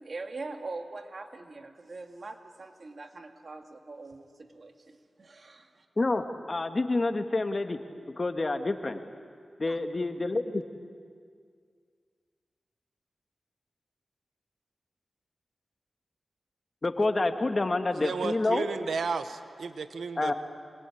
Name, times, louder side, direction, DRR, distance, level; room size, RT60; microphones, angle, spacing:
voice 1, 0.0-5.9 9.6-9.8, right 3 dB, 60° right, 5 dB, 2.1 m, -43 dB
voice 2, 6.0-7.8 8.2-9.0 9.6-10.6 16.8-18.7 20.2-20.3, left 2 dB, 45° left, 6 dB, 1.9 m, -28 dB
voice 3, 18.0-20.3, right 5 dB, 90° right, 10 dB, 1.1 m, -33 dB
26.0 x 22.0 x 8.6 m, 2.1 s
cardioid pair, 50°, 0 cm